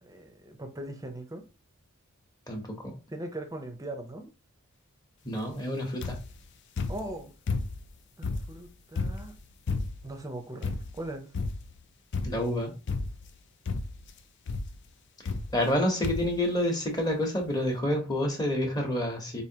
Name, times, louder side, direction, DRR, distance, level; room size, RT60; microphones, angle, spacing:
voice 1, 0.0-1.4 3.1-4.3 6.9-7.3 8.2-9.3 10.0-11.3, right 1 dB, 15° right, 0.6 m, -40 dB
voice 2, 2.5-2.9 5.2-6.2 12.2-12.7 15.5-19.4, left 1 dB, 20° left, 1.0 m, -28 dB
sound 1, 6.0-6.4 6.8-7.9 8.2-10.2 10.6-11.1 11.3-11.8 12.1-12.5 12.9-13.4 13.7-14.1 14.5-14.8 15.3-15.8 16.0-16.4 17.1-17.2 17.4-17.5, left 3 dB, 55° left, 0.5 m, -33 dB
4.8 x 2.6 x 2.8 m
head